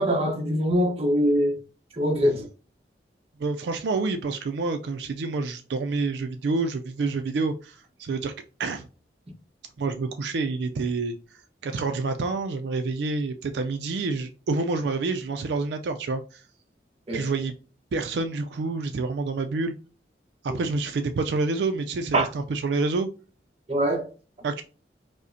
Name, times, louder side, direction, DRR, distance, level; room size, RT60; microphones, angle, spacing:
voice 1, 0.0-1.6 2.0-2.5 17.1-17.2 22.1-22.3 23.7-24.1, equal, 35° right, 0.8 m, -23 dB
voice 2, 3.4-8.3 8.6-8.9 9.8-11.2 11.6-16.4 17.1-17.5 17.9-19.7 20.4-23.1 24.4-24.6, right 3 dB, 70° right, 0.4 m, -28 dB
5.1 x 2.1 x 2.6 m
head